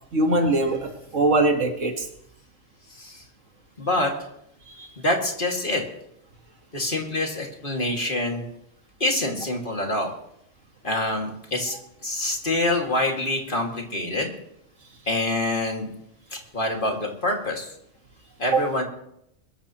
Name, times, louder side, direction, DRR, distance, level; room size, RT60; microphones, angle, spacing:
voice 1, 0.1-2.1 4.7-4.9 18.5-18.6, right 2 dB, 70° right, 4 dB, 2.0 m, -22 dB
voice 2, 3.8-4.1 5.0-5.8 6.7-8.4 9.0-10.1 10.8-11.8 12.0-14.3 15.1-15.9 16.3-17.7 18.4-18.8, left 2 dB, 40° left, 1 dB, 2.3 m, -26 dB
21.5 x 13.5 x 3.0 m, 0.76 s
omnidirectional pair, 1.4 m